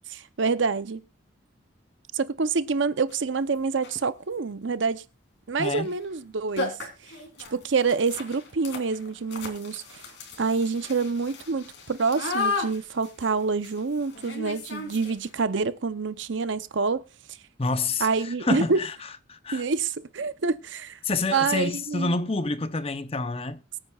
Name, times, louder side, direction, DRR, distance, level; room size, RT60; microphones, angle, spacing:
voice 1, 0.1-1.0 2.1-5.0 5.5-6.8 7.5-10.0 10.4-17.0 18.0-18.8 19.5-21.0 21.3-22.1, right 4 dB, 70° right, 0.7 m, -27 dB
sound 1, 3.1-3.2 3.7-4.1 5.8-6.0 6.2-6.3 6.6-15.4, left 3 dB, 65° left, 3.2 m, -35 dB
voice 2, 5.6-5.9 17.6-18.9 19.3-19.6 21.0-23.6, left 3 dB, 30° left, 0.7 m, -28 dB
23.5 x 8.9 x 2.4 m
head